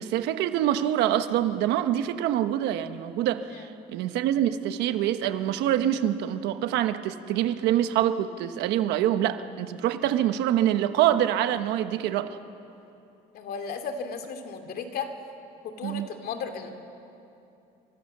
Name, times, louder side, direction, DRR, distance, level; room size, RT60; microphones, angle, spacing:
voice 1, 0.0-12.4 15.8-16.1, right 11 dB, 90° right, 9 dB, 1.2 m, -25 dB
voice 2, 13.3-15.1 15.6-16.7, left 5 dB, 65° left, 6 dB, 2.8 m, -35 dB
28.5 x 25.5 x 6.8 m, 2.8 s
cardioid pair, 110°, 17 cm